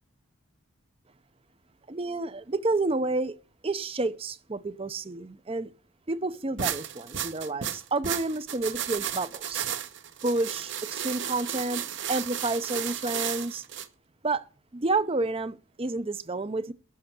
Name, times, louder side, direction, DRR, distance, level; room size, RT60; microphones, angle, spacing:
voice 1, 1.9-3.3 3.6-5.7 6.1-9.7 10.2-13.6 14.2-14.5 14.7-16.7, right 2 dB, 25° right, 0.5 m, -30 dB
sound 1, 6.6-13.9, right 9 dB, 55° right, 0.9 m, -33 dB
11.0 x 5.6 x 8.0 m
head